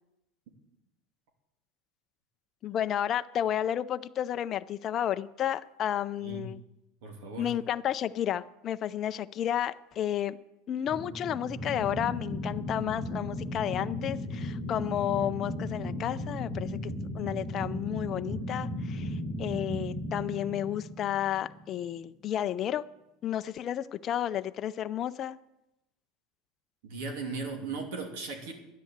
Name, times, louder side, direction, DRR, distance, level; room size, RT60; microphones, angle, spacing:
voice 1, 2.6-6.6 7.4-10.4 10.7-22.8 23.2-25.4, left 10 dB, 30° left, 11 dB, 0.5 m, -32 dB
voice 2, 7.0-7.5 26.8-28.5, right 4 dB, 65° right, 2 dB, 2.7 m, -37 dB
sound 1, 10.8-21.8, left 1 dB, 20° right, 2.3 m, -36 dB
10.5 x 10.0 x 8.1 m, 0.92 s
supercardioid pair, 155°, 0 cm